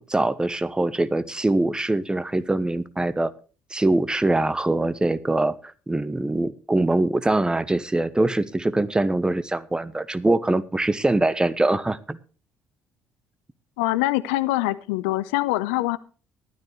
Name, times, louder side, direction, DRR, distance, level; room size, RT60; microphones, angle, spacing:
voice 1, 0.0-3.3 3.7-5.5 5.9-12.2, right 2 dB, 10° right, 15 dB, 1.0 m, -23 dB
voice 2, 13.8-16.0, left 17 dB, 65° left, 15 dB, 0.7 m, -24 dB
14.5 x 12.0 x 3.2 m, 0.37 s
figure-of-eight pair, 50°, 7 cm